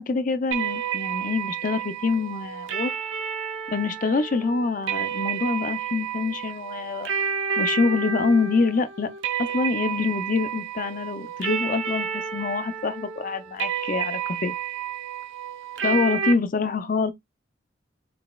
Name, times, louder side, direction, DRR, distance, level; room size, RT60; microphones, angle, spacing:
voice 1, 0.0-2.9 3.7-7.1 7.6-9.1 9.4-14.6 15.8-17.1, left 4 dB, 45° left, 0.4 m, -25 dB
sound 1, 0.5-16.3, right 7 dB, 80° right, 0.7 m, -30 dB
3.9 x 3.2 x 2.2 m
head